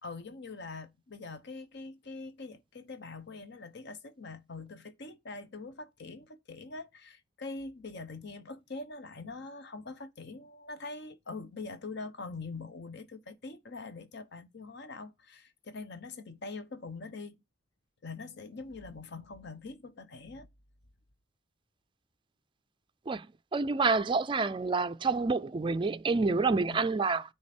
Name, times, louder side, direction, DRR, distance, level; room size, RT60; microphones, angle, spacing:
voice 1, 0.0-17.4 18.0-20.5 26.7-26.9, left 3 dB, 60° left, 1.0 m, -43 dB
voice 2, 23.5-27.2, right 4 dB, 25° right, 0.4 m, -28 dB
9.5 x 3.6 x 4.3 m
head